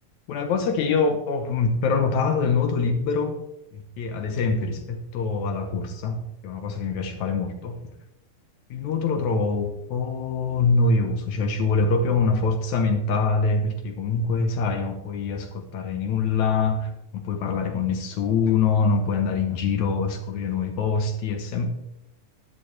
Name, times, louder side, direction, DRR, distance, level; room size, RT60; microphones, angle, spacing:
voice 1, 0.3-3.4 3.7-7.8 8.7-21.7, left 4 dB, 70° left, 5 dB, 2.0 m, -24 dB
11.0 x 10.5 x 3.2 m, 0.81 s
omnidirectional pair, 4.0 m